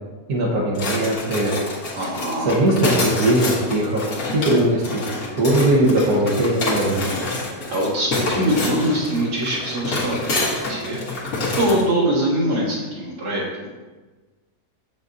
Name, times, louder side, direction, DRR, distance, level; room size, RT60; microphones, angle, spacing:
voice 1, 0.3-1.5 2.4-4.0 4.3-5.0 5.4-7.1, right 1 dB, 65° right, -4 dB, 1.7 m, -19 dB
Utensils drawer - rummaging and searching., 0.8-11.9, left 2 dB, 60° left, 1.7 m, -27 dB
voice 2, 2.0-2.5 7.7-11.0 11.5-13.4, right 1 dB, 90° right, -5 dB, 2.2 m, -23 dB
7.3 x 6.3 x 2.7 m, 1.3 s
omnidirectional pair, 1.8 m